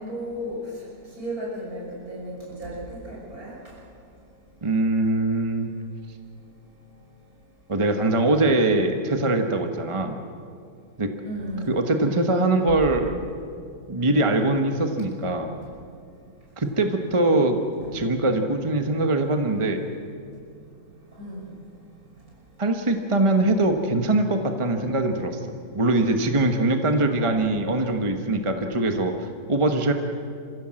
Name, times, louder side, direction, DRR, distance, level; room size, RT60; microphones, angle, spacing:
voice 1, 0.0-3.8 11.2-11.8 17.8-18.0 21.1-21.5 27.1-27.4, equal, 70° right, -4 dB, 6.6 m, -35 dB
voice 2, 4.6-5.7 7.7-10.2 11.0-11.1 11.7-13.1 13.9-15.5 16.6-17.6 17.9-19.8 22.6-25.4 25.7-29.9, right 2 dB, 20° right, 5 dB, 1.2 m, -22 dB
27.5 x 15.5 x 7.7 m, 2.3 s
omnidirectional pair, 1.6 m